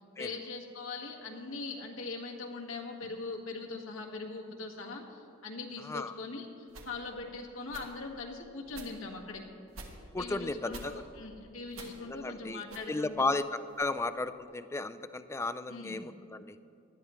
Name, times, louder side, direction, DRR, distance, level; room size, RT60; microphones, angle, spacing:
voice 1, 0.2-9.4 10.2-13.3 15.7-16.0, left 3 dB, 90° left, 0 dB, 1.8 m, -41 dB
voice 2, 5.8-6.1 10.1-11.0 12.1-12.6 12.9-13.4 13.8-16.6, left 3 dB, 15° left, 12 dB, 0.3 m, -34 dB
sound 1, 6.7-6.9 7.7-7.9 8.7-8.9 9.7-9.9 10.7-10.9 11.7-12.0 12.7-12.8 13.7-13.9, right 3 dB, 90° right, 1.9 m, -47 dB
19.5 x 12.5 x 3.2 m, 2.7 s
head